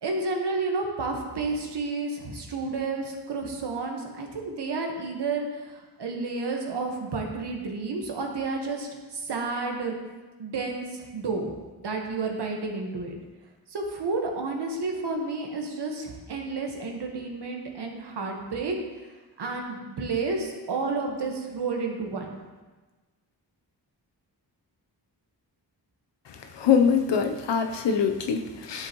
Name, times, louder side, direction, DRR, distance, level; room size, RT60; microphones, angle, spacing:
voice 1, 0.0-9.9 10.4-11.5 11.8-13.2 13.7-18.8 19.4-22.4, right 3 dB, 70° right, 1 dB, 1.5 m, -31 dB
voice 2, 26.3-28.9, left 6 dB, 80° left, 5 dB, 0.9 m, -24 dB
10.5 x 7.8 x 3.1 m, 1.3 s
cardioid pair, 80°, 42 cm